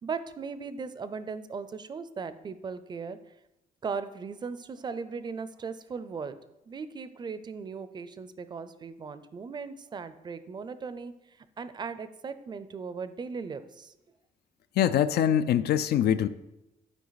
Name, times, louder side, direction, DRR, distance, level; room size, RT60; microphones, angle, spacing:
voice 1, 0.0-3.2 3.8-6.4 6.7-14.0, right 5 dB, 25° right, 13 dB, 0.5 m, -38 dB
voice 2, 14.8-16.3, left 10 dB, 80° left, 12 dB, 0.5 m, -23 dB
11.5 x 4.8 x 4.0 m, 0.92 s
cardioid pair, 150°, 17 cm